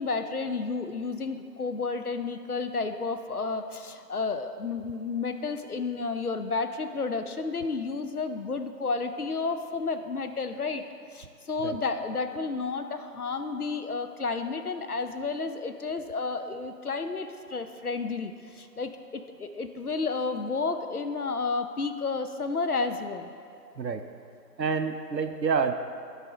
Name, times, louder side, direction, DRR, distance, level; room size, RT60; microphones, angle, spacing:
voice 1, 0.0-10.8 11.1-23.3, left 4 dB, 65° left, 8 dB, 0.6 m, -31 dB
voice 2, 24.6-25.7, right 5 dB, 80° right, 7 dB, 0.6 m, -28 dB
10.5 x 4.2 x 5.0 m, 2.4 s
figure-of-eight pair, 170°, 50 cm